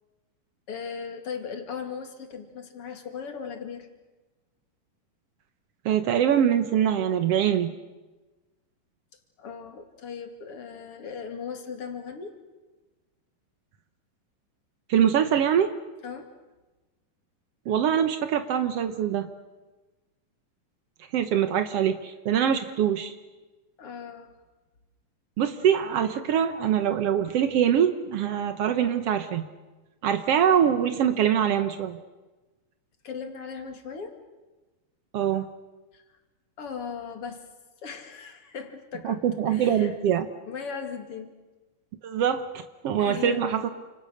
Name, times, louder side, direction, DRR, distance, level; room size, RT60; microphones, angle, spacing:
voice 1, 0.7-3.9 9.4-12.4 16.0-16.3 23.8-24.3 33.0-34.1 35.9-36.0 36.6-37.4 37.8-39.9 40.3-41.3 43.0-43.6, left 6 dB, 40° left, 5 dB, 3.1 m, -38 dB
voice 2, 5.8-7.7 14.9-15.7 17.6-19.3 21.1-23.1 25.4-29.4 30.0-32.0 35.1-35.4 39.0-40.3 42.0-43.7, right 9 dB, 85° right, 9 dB, 1.3 m, -23 dB
29.5 x 27.0 x 6.6 m, 1.2 s
omnidirectional pair, 4.4 m